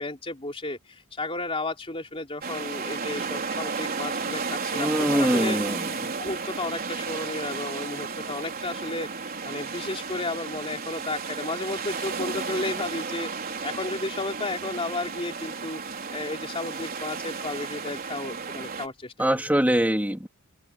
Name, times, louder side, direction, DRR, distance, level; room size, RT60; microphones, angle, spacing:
voice 1, 0.0-5.6 6.2-9.1 9.4-15.8 16.1-19.5, left 2 dB, 25° left, 3.4 m, -33 dB
sound 1, 2.4-18.9, right 5 dB, 40° right, 4.0 m, -33 dB
voice 2, 4.7-5.9 19.2-20.3, equal, 5° right, 2.9 m, -23 dB
head